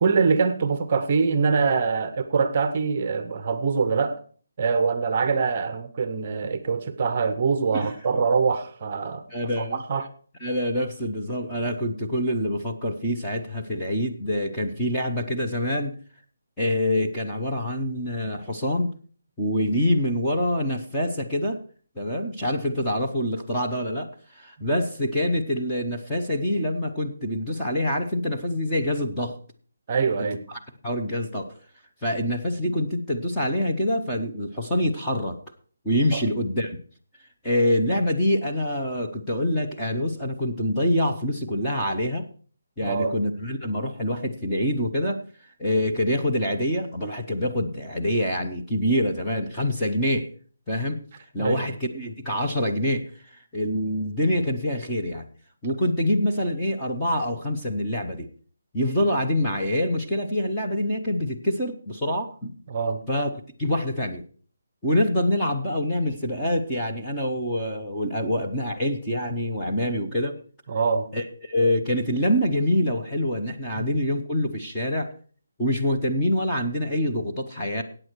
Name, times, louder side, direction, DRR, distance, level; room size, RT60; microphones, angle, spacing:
voice 1, 0.0-4.2 4.6-9.2 9.6-10.1 29.9-30.4 36.1-36.2 42.8-43.1 51.4-51.6 62.7-63.0 70.7-71.1, right 5 dB, 25° right, 11 dB, 0.7 m, -24 dB
voice 2, 9.3-9.8 10.4-15.9 16.6-18.9 19.4-21.6 22.0-29.4 30.2-31.5 32.0-35.4 35.8-36.8 37.4-42.3 42.8-45.2 45.6-50.3 50.7-51.0 51.3-53.1 53.5-55.3 55.6-58.3 58.7-62.5 63.1-63.3 63.6-64.2 64.8-70.3 71.1-75.1 75.6-77.8, left 1 dB, 5° left, -3 dB, 0.7 m, -25 dB
14.5 x 8.8 x 4.6 m, 0.43 s
hypercardioid pair, 180°, 0 cm